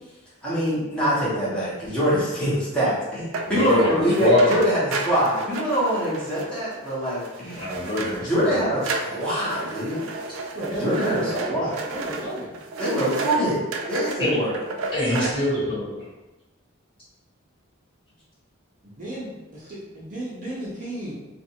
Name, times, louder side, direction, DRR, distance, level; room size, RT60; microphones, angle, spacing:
voice 1, 0.4-7.7 8.2-10.1 10.8-11.7 12.8-13.6 13.9-14.5, equal, 5° left, -10 dB, 1.0 m, -24 dB
sound 1, 3.3-8.5 8.8-13.4 13.7-14.2 14.5-15.3, right 3 dB, 80° right, 0.3 m, -33 dB
voice 2, 3.4-4.6 7.5-8.6 14.2-14.4 14.9-15.9, left 1 dB, 25° left, -12 dB, 1.5 m, -23 dB
voice 3, 10.5-12.5 18.8-21.1, right 1 dB, 40° right, -7 dB, 0.6 m, -32 dB
2.5 x 2.4 x 2.8 m, 1.1 s
head